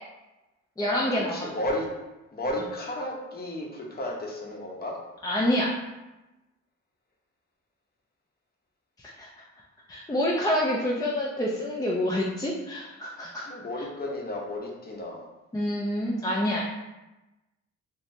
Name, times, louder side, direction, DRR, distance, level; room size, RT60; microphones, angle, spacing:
voice 1, 0.8-1.5 5.2-5.7 9.0-9.3 9.9-13.5 15.5-16.6, left 1 dB, 15° left, -4 dB, 0.4 m, -27 dB
voice 2, 1.3-1.9 2.3-4.9 13.5-15.3, left 1 dB, 30° left, -2 dB, 0.9 m, -33 dB
3.2 x 2.8 x 2.7 m, 1.0 s
cardioid pair, 90°, 30 cm